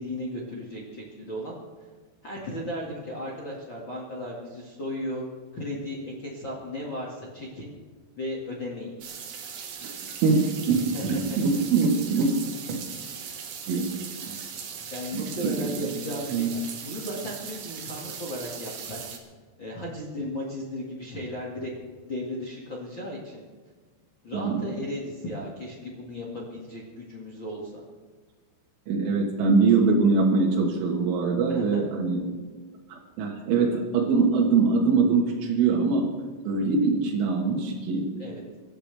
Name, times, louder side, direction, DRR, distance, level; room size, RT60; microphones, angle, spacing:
voice 1, 0.0-1.5 2.2-5.3 5.5-7.7 8.2-9.0 10.7-11.1 14.6-19.0 19.6-21.7 22.1-23.4 24.2-27.7 31.5-31.8 38.2-38.4, left 1 dB, 50° left, -3 dB, 1.4 m, -35 dB
sound 1, 9.0-19.2, right 7 dB, 60° right, 2.8 m, -39 dB
voice 2, 9.8-12.4 12.7-12.9 13.7-14.4 15.1-15.9 16.3-16.5 24.3-24.6 28.9-32.4 32.9-36.1 36.5-38.1, right 4 dB, 75° right, -2 dB, 3.9 m, -23 dB
25.5 x 13.0 x 3.4 m, 1.5 s
omnidirectional pair, 5.7 m